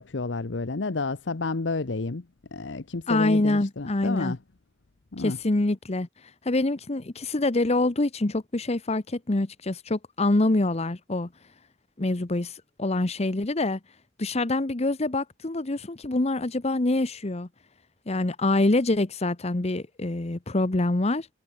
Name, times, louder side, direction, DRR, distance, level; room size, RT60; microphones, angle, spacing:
voice 1, 0.0-2.2 2.5-4.4 5.1-5.4, left 3 dB, 70° left, 0.9 m, -30 dB
voice 2, 3.1-4.3 5.2-11.3 12.0-13.8 14.2-17.5 18.1-21.3, left 2 dB, 35° left, 1.0 m, -25 dB
head